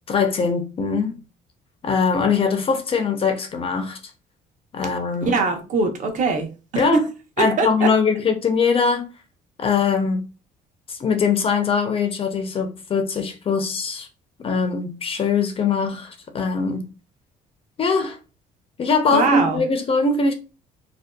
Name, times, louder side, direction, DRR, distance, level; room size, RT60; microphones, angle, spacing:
voice 1, 0.1-1.2 1.8-4.0 4.7-5.3 6.7-7.1 7.4-9.1 9.6-10.2 10.9-14.1 14.4-16.9 17.8-18.2 18.8-20.3, left 5 dB, 35° left, 0.4 m, -22 dB
voice 2, 5.2-6.8 7.4-7.9 19.1-19.6, right 3 dB, 50° right, 0.7 m, -22 dB
2.6 x 2.1 x 2.2 m
cardioid pair, 110°, 17 cm